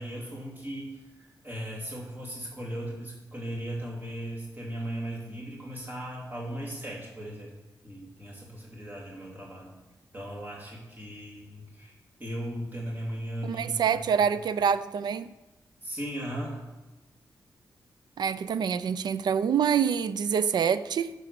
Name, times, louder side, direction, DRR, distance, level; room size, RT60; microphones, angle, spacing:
voice 1, 0.0-7.5 7.8-9.7 10.1-11.9 12.2-14.3 15.8-16.6, right 1 dB, 25° right, 2.7 m, -37 dB
voice 2, 13.4-15.3 18.2-21.1, right 7 dB, 80° right, 0.4 m, -26 dB
10.5 x 4.8 x 6.8 m
wide cardioid pair, 180°, 7 cm